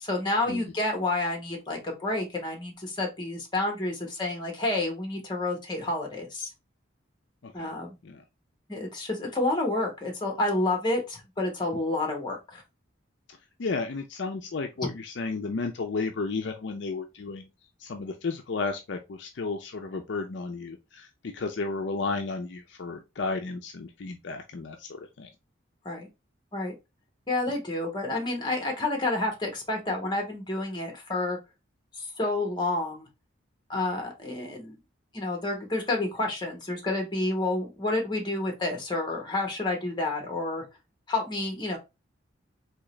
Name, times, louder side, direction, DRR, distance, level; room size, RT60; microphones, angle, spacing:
voice 1, 0.0-6.5 7.5-8.0 8.7-12.6 25.8-26.1 26.5-26.7 27.3-31.4 32.0-33.1 33.7-34.8 35.1-40.6 41.1-41.8, left 2 dB, 20° left, 1.1 m, -29 dB
voice 2, 13.6-17.5 17.8-21.1 21.3-25.3, left 3 dB, 60° left, 0.5 m, -33 dB
3.6 x 2.9 x 3.1 m
head